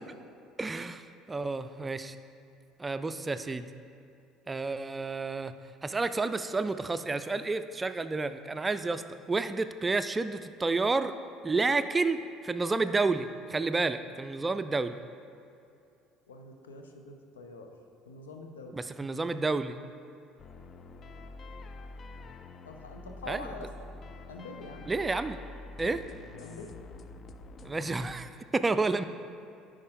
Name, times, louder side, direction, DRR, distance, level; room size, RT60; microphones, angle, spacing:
voice 1, 0.6-2.2 2.8-3.7 4.5-5.5 5.8-9.0 9.3-11.1 11.4-15.0 18.7-19.8 23.3-23.5 24.9-25.4 25.8-26.0 27.6-29.0, right 3 dB, 20° right, 11 dB, 0.4 m, -30 dB
voice 2, 16.3-17.7 18.1-18.7 22.6-23.7 24.3-24.9 26.3-26.7, left 3 dB, 85° left, 4 dB, 0.7 m, -45 dB
sound 1, 20.4-28.2, left 3 dB, 40° left, 0.4 m, -46 dB
10.5 x 4.8 x 3.7 m, 2.6 s
hypercardioid pair, 65°, 0 cm